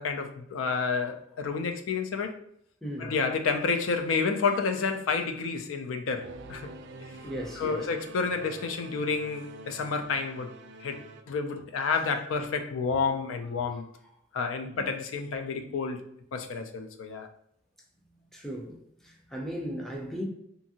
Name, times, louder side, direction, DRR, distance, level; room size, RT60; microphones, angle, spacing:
voice 1, 0.0-2.3 3.0-6.7 7.6-10.5 10.8-11.0 11.3-13.9 14.3-16.0 16.3-17.3, left 4 dB, 80° left, 0.4 m, -30 dB
voice 2, 2.8-3.2 7.0-7.9 10.9-11.1 11.9-12.0 13.7-13.8 14.7-14.9 15.6-15.7 18.3-20.2, equal, ahead, 0.5 m, -38 dB
Singing / Musical instrument, 6.2-11.2, right 2 dB, 60° right, 0.3 m, -46 dB
2.7 x 2.5 x 2.7 m
head